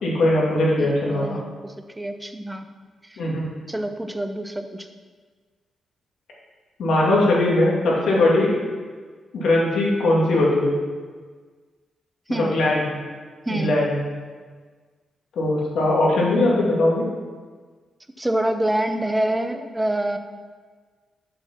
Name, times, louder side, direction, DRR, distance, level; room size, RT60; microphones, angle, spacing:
voice 1, 0.0-1.4 3.2-3.5 6.8-8.5 9.3-10.7 12.3-12.9 13.5-14.0 15.3-17.0, left 1 dB, 80° left, -4 dB, 2.3 m, -20 dB
voice 2, 0.8-2.7 3.0-3.2 3.7-4.9 12.3-12.6 13.5-13.8 18.2-20.2, right 1 dB, 10° right, 7 dB, 0.6 m, -26 dB
6.8 x 6.1 x 5.9 m, 1.5 s
wide cardioid pair, 135°, 0 cm